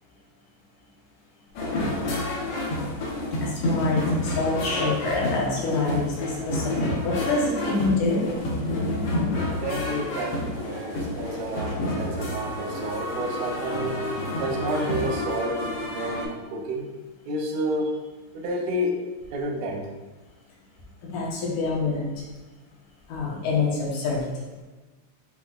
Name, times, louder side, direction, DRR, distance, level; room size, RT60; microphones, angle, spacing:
sound 1, 1.5-16.2, left 1 dB, 65° left, 1.7 m, -29 dB
voice 1, 3.4-8.3 21.0-22.1 23.1-24.3, left 3 dB, 90° left, -3 dB, 2.5 m, -26 dB
voice 2, 9.5-15.7 15.9-16.9 17.2-18.0 18.3-19.0 19.3-19.9, right 1 dB, 85° right, 1 dB, 2.1 m, -30 dB
7.5 x 2.9 x 2.3 m, 1.2 s
omnidirectional pair, 3.3 m